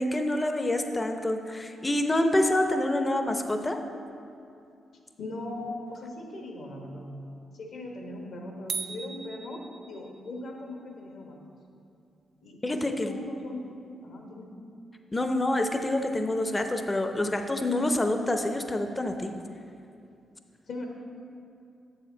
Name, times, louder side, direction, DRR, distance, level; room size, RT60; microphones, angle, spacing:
voice 1, 0.0-3.8 12.6-13.2 15.1-19.3, left 1 dB, 25° left, 6 dB, 0.7 m, -27 dB
voice 2, 5.2-7.1 7.5-11.4 12.4-13.8 14.0-14.6 20.7-20.9, left 2 dB, 70° left, 1 dB, 1.2 m, -39 dB
sound 1, 8.7-10.3, right 5 dB, 60° right, 0.3 m, -37 dB
7.3 x 7.2 x 3.8 m, 2.6 s
supercardioid pair, 50°, 0 cm